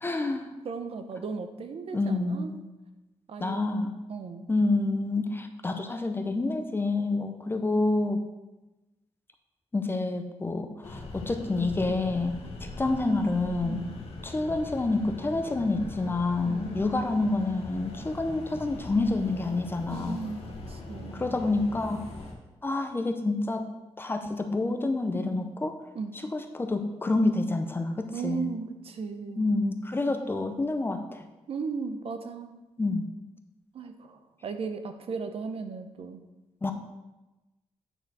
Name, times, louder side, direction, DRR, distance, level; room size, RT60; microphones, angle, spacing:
voice 1, 0.0-0.5 1.9-2.6 3.4-3.9 4.5-8.2 9.7-12.4 12.8-13.8 14.2-20.2 21.1-22.0 22.6-23.7 24.0-25.8 26.3-28.5 29.4-31.3 32.8-33.1 36.6-36.7, left 2 dB, 20° left, 6 dB, 0.5 m, -28 dB
voice 2, 0.6-2.5 3.3-3.6 4.1-4.5 13.6-14.1 16.4-16.9 19.9-21.3 25.9-26.2 28.1-29.5 31.5-32.6 33.7-36.2, right 5 dB, 55° right, 8 dB, 0.6 m, -36 dB
sound 1, 10.8-22.3, left 2 dB, 60° left, 1.4 m, -41 dB
8.9 x 4.7 x 4.7 m, 1.0 s
wide cardioid pair, 175°, 12 cm